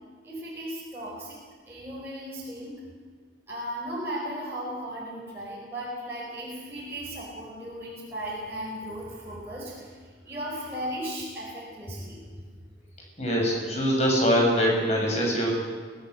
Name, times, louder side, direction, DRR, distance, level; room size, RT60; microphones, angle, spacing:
voice 1, 0.2-1.4 1.7-2.7 3.5-9.9 10.2-12.3, equal, 15° right, -7 dB, 5.1 m, -36 dB
voice 2, 13.2-15.5, equal, 35° left, -1 dB, 6.9 m, -23 dB
25.0 x 17.0 x 8.0 m, 1.5 s
head